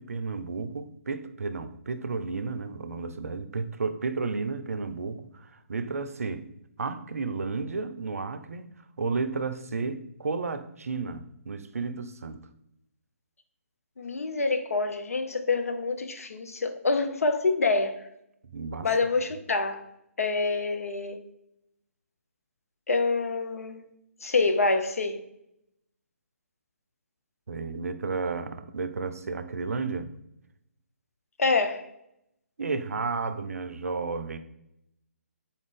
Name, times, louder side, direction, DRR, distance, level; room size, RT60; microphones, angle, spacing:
voice 1, 0.0-6.5 6.8-8.7 9.0-12.4 18.5-18.9 27.5-30.1 32.6-34.4, right 4 dB, 80° right, 0.4 m, -32 dB
voice 2, 14.0-18.0 18.8-19.9 20.2-21.2 22.9-23.8 24.2-25.2 31.4-31.9, left 3 dB, 75° left, 0.5 m, -26 dB
4.1 x 2.4 x 3.5 m
figure-of-eight pair, 140°, 8 cm